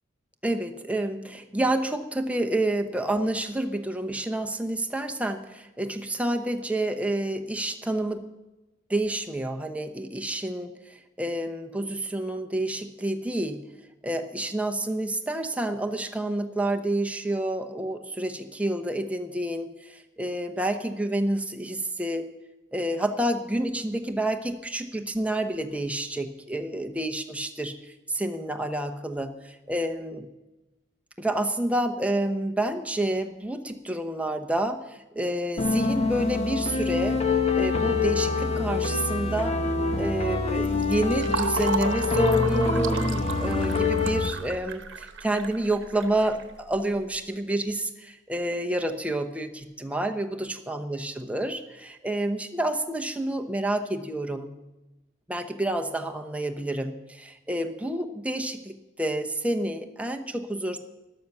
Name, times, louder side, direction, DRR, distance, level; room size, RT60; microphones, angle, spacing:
voice 1, 0.4-8.2 8.9-13.6 14.0-22.2 22.7-27.7 28.1-30.3 31.2-39.6 40.0-54.5 55.3-60.8, right 1 dB, 5° right, 4 dB, 0.8 m, -29 dB
sound 1, 35.6-44.3, left 4 dB, 30° left, 1.1 m, -25 dB
Fill (with liquid), 40.6-47.0, right 4 dB, 60° right, 1.1 m, -34 dB
13.0 x 12.0 x 6.0 m, 1.0 s
head